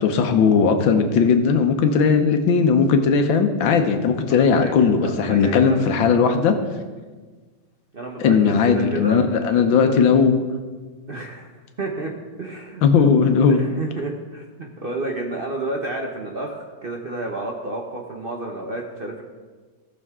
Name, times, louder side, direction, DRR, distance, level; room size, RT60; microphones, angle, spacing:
voice 1, 0.0-6.5 8.2-10.4 12.8-13.6, left 6 dB, 85° left, 6 dB, 1.7 m, -17 dB
voice 2, 4.3-5.9 7.9-10.0 11.1-11.5 11.8-12.1 12.4-12.8 13.5-19.2, right 2 dB, 40° right, 0 dB, 0.8 m, -30 dB
17.5 x 6.6 x 3.6 m, 1.4 s
omnidirectional pair, 2.1 m